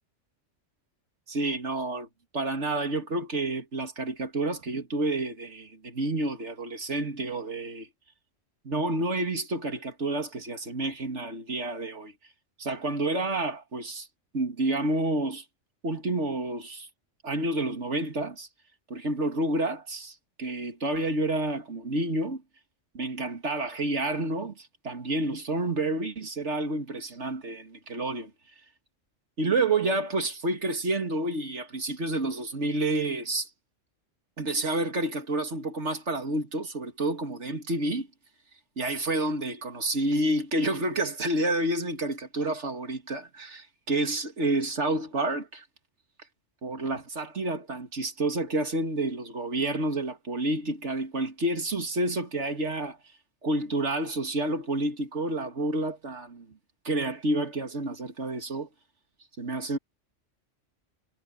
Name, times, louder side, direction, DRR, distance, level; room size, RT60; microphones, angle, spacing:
voice 1, 1.3-2.1 2.3-7.9 8.6-12.1 12.6-14.1 14.3-15.4 15.8-16.9 17.2-18.5 18.9-22.4 22.9-28.3 29.4-33.5 34.4-38.1 38.8-45.6 46.6-53.0 53.4-56.5 56.8-58.7 59.4-59.8, right 2 dB, 70° right, 2.6 m, -29 dB
omnidirectional pair, 1.3 m